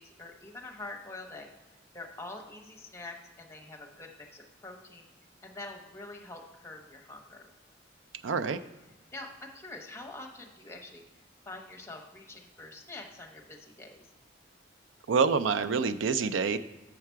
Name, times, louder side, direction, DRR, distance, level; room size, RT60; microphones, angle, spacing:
voice 1, 0.0-1.5 1.9-5.1 5.4-7.4 9.1-11.0 11.5-14.0, left 2 dB, 15° left, 1 dB, 0.9 m, -45 dB
voice 2, 8.2-8.6 15.1-16.6, right 5 dB, 85° right, 13 dB, 0.4 m, -26 dB
7.5 x 5.7 x 4.5 m, 1.1 s
head